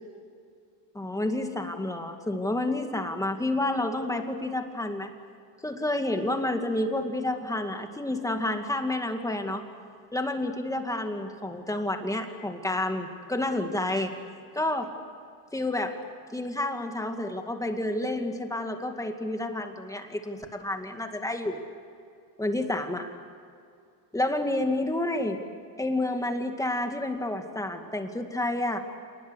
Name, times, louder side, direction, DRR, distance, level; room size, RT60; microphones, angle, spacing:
voice 1, 0.9-5.1 5.6-9.6 10.1-14.1 14.5-14.9 15.5-16.0 16.3-21.6 22.4-23.1 24.1-25.4 25.8-28.8, left 1 dB, 5° left, 5 dB, 2.2 m, -29 dB
28.0 x 20.5 x 8.2 m, 2.4 s
cardioid pair, 135°, 46 cm